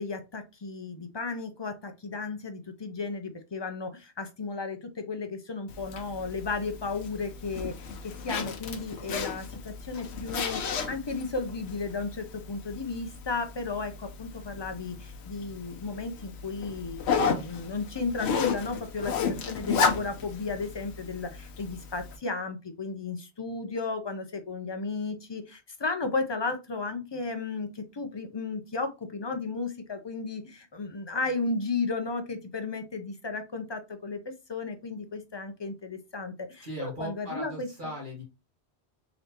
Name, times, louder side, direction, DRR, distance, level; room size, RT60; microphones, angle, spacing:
voice 1, 0.0-37.9, left 3 dB, 35° left, 7 dB, 0.5 m, -34 dB
Zipper (clothing), 5.7-22.2, left 6 dB, 80° left, 1.0 m, -34 dB
voice 2, 36.6-38.2, equal, 50° right, -4 dB, 1.6 m, -38 dB
3.9 x 3.2 x 2.8 m, 0.26 s
omnidirectional pair, 1.1 m